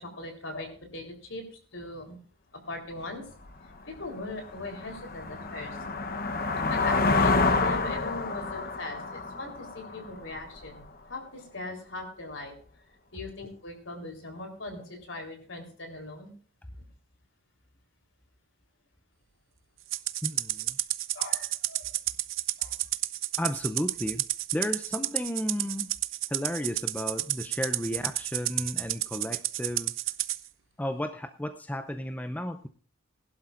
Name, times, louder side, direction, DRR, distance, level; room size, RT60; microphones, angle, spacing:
voice 1, 0.0-2.2 2.5-3.3 3.9-5.9 6.7-10.8 11.1-12.5 13.1-16.3 21.1-21.9 22.6-22.7, left 2 dB, 65° left, 3 dB, 3.7 m, -40 dB
sound 1, 3.5-3.6 4.1-10.6, left 3 dB, 45° left, 0.9 m, -28 dB
Rattle (instrument), 19.9-30.4, right 15 dB, 75° right, 0.7 m, -31 dB
voice 2, 20.2-20.8 23.4-24.2 24.5-25.9 26.3-29.9 30.8-32.7, left 1 dB, 10° left, 7 dB, 0.5 m, -33 dB
20.5 x 11.5 x 2.5 m, 0.43 s
head